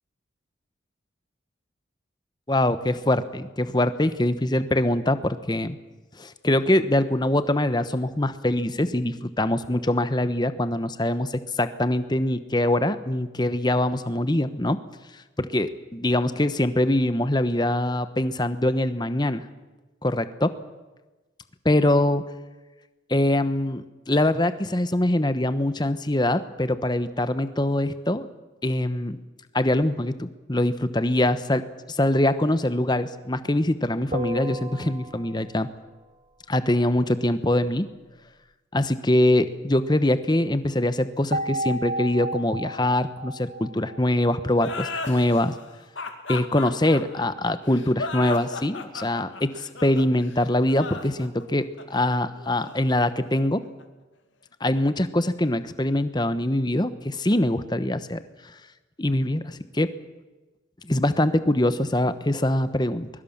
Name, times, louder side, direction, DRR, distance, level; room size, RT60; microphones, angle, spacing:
voice 1, 2.5-5.8 6.2-14.8 15.4-19.4 20.0-20.5 21.6-22.2 23.1-28.3 28.6-29.2 29.5-31.6 31.9-35.7 36.5-37.9 38.7-45.5 46.3-53.6 54.6-58.2 59.0-59.9 60.8-63.1, left 1 dB, 20° left, 12 dB, 1.0 m, -23 dB
sound 1, 34.1-35.6 41.3-44.7, right 1 dB, 40° right, 0.9 m, -33 dB
sound 2, 44.5-53.8, left 4 dB, 80° left, 2.4 m, -36 dB
22.5 x 22.0 x 7.3 m, 1.2 s
head